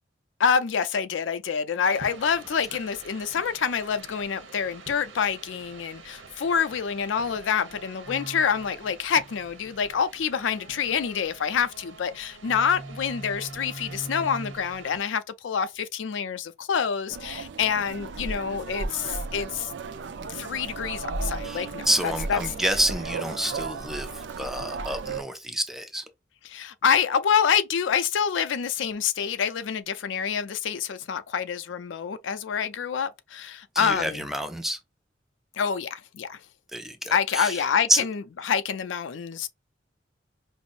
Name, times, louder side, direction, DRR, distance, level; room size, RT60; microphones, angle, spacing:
voice 1, 0.4-19.7 20.3-22.4 26.4-34.2 35.5-36.4 37.1-39.5, left 7 dB, 80° left, 0.4 m, -27 dB
sound 1, 1.9-15.0, right 3 dB, 90° right, 0.9 m, -44 dB
sound 2, 17.1-25.2, right 4 dB, 70° right, 0.5 m, -35 dB
voice 2, 21.4-26.0 33.7-34.8 36.7-37.6 37.9-38.1, right 1 dB, ahead, 0.4 m, -28 dB
5.2 x 2.0 x 2.4 m
head